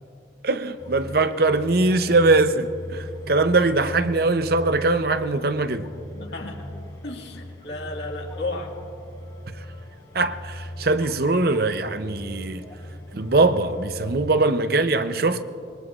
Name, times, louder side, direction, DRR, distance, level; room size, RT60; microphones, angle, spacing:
voice 1, 0.4-5.8 10.1-12.6 13.1-15.4, right 3 dB, 50° right, 0.6 m, -21 dB
sound 1, 0.8-14.3, left 1 dB, 35° left, 1.9 m, -39 dB
voice 2, 6.1-6.7 7.0-8.8, left 2 dB, 65° left, 1.9 m, -33 dB
26.0 x 22.0 x 2.4 m
head